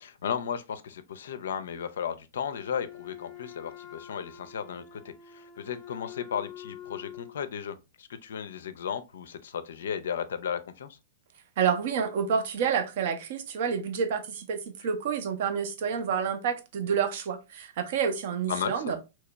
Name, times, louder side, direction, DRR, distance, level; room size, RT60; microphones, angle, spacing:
voice 1, 0.0-11.0 18.5-18.9, left 8 dB, 60° left, 0.4 m, -35 dB
Wind instrument woodwind instrument, 2.5-7.4, left 10 dB, 20° left, 0.7 m, -46 dB
voice 2, 11.6-19.0, right 7 dB, 50° right, 0.6 m, -29 dB
3.0 x 2.8 x 3.3 m
figure-of-eight pair, 105°, 0 cm